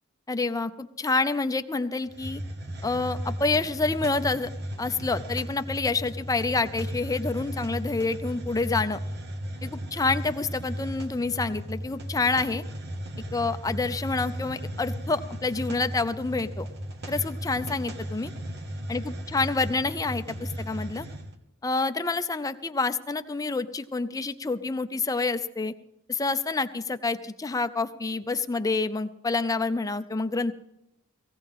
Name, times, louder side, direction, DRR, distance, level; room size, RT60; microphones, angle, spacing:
voice 1, 0.3-2.4 2.8-4.5 4.8-9.0 9.6-12.6 13.3-16.7 17.1-18.3 18.9-21.1 21.6-25.8 26.1-30.5, left 3 dB, 15° left, 10 dB, 0.5 m, -28 dB
Hiss, 2.1-21.3, equal, 50° right, 1.3 m, -36 dB
18.0 x 16.0 x 3.7 m, 0.87 s
head